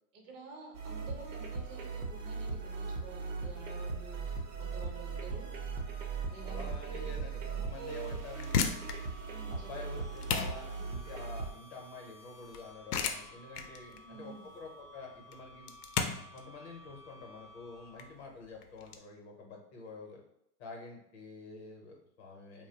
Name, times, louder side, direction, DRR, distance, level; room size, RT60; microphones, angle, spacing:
voice 1, 0.1-5.5 6.3-7.1 7.5-8.2 9.3-10.0 13.9-14.5, right 4 dB, 55° right, 1 dB, 0.8 m, -49 dB
sound 1, 0.7-11.5, right 4 dB, 85° right, 0.8 m, -39 dB
voice 2, 6.4-7.4 7.6-8.8 9.5-15.7 16.3-20.2 20.6-22.7, left 3 dB, 45° left, 1 dB, 0.7 m, -48 dB
sound 2, 7.9-18.3, right 1 dB, 15° left, 0.3 m, -56 dB
Nerf Tristrike Shot & Reload, 8.4-19.0, left 6 dB, 85° left, 0.5 m, -37 dB
2.8 x 2.0 x 2.8 m, 0.77 s
hypercardioid pair, 145°, 45 cm